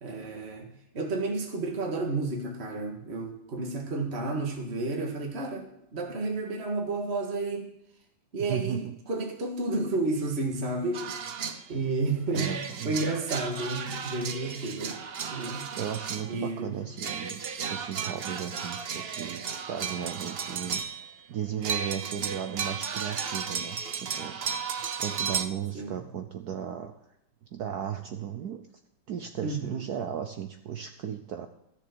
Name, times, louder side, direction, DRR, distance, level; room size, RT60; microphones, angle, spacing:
voice 1, 0.0-7.7 8.3-11.1 11.7-15.0 15.3-15.7 16.3-16.9 25.7-26.1 29.4-29.9, right 2 dB, 35° right, 2 dB, 1.9 m, -31 dB
voice 2, 8.5-8.9 12.3-13.0 15.8-20.8 21.3-26.9 27.5-28.6 29.1-31.5, right 9 dB, 65° right, 7 dB, 1.1 m, -36 dB
sound 1, 10.9-11.6 12.3-16.4 17.0-21.2 21.6-25.5, right 6 dB, 80° right, 0.5 m, -34 dB
13.5 x 6.9 x 6.8 m, 0.79 s
omnidirectional pair, 2.1 m